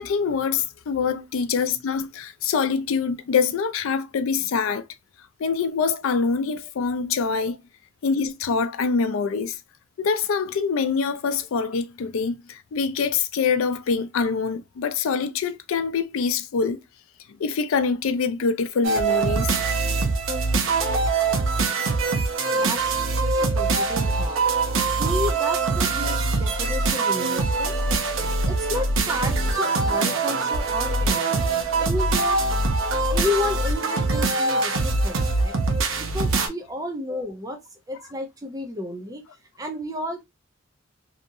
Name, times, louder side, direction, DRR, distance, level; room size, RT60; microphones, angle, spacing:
voice 1, 0.0-4.8 5.4-7.6 8.0-9.6 10.0-16.8 17.4-19.5 31.7-31.8, left 5 dB, 85° left, 0.4 m, -25 dB
sound 1, 18.8-36.5, right 3 dB, 85° right, 0.6 m, -23 dB
voice 2, 23.1-24.4 25.0-27.7 28.4-31.4 31.8-32.4 33.1-35.5 36.0-37.6 37.9-39.2 39.6-40.3, left 1 dB, 15° right, 0.6 m, -32 dB
2.8 x 2.5 x 2.6 m
head